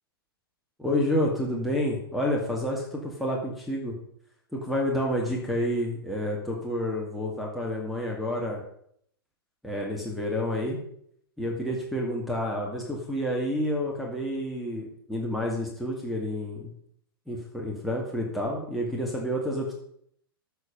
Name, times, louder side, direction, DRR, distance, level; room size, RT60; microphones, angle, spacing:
voice 1, 0.8-3.9 4.5-8.6 9.6-10.8 11.4-16.7 17.3-19.7, left 1 dB, ahead, -3 dB, 2.2 m, -29 dB
13.5 x 6.9 x 5.3 m, 0.68 s
figure-of-eight pair, 100°, 13 cm